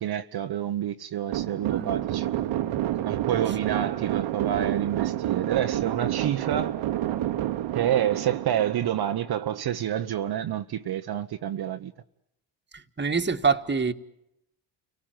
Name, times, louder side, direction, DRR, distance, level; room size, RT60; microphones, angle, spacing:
voice 1, 0.0-2.3 3.0-6.7 7.7-11.9, right 10 dB, 50° right, 1.1 m, -28 dB
sound 1, 1.3-9.6, right 13 dB, 70° right, 1.5 m, -29 dB
voice 2, 13.0-13.9, right 5 dB, 20° right, 1.8 m, -25 dB
29.5 x 18.0 x 9.2 m
supercardioid pair, 75°, 48 cm